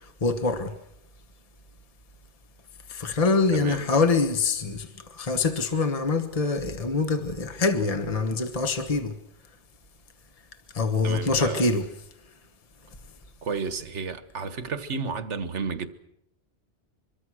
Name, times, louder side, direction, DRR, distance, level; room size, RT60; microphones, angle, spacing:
voice 1, 0.2-0.7 2.9-9.1 10.7-11.9, left 3 dB, 30° left, 1.4 m, -25 dB
voice 2, 3.5-4.1 11.0-11.7 13.4-15.9, right 5 dB, 80° right, 1.7 m, -32 dB
24.5 x 23.0 x 6.3 m
omnidirectional pair, 1.2 m